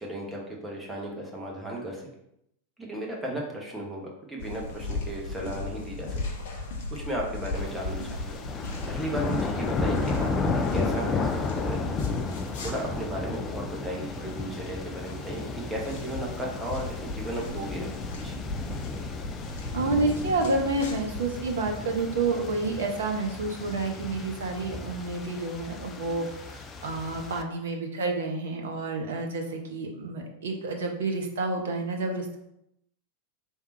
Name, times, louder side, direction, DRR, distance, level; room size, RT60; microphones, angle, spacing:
voice 1, 0.0-2.1 2.8-6.2 6.9-8.4 8.9-12.0 12.6-17.9 18.2-18.3, right 1 dB, 10° right, -2 dB, 1.1 m, -35 dB
sound 1, 4.4-22.2, left 3 dB, 55° left, 0.8 m, -38 dB
sound 2, 7.6-27.4, left 3 dB, 25° left, 0.4 m, -33 dB
voice 2, 19.7-32.4, right 3 dB, 60° right, 2 dB, 0.7 m, -29 dB
3.6 x 2.7 x 4.2 m, 0.78 s
figure-of-eight pair, 90°, 0 cm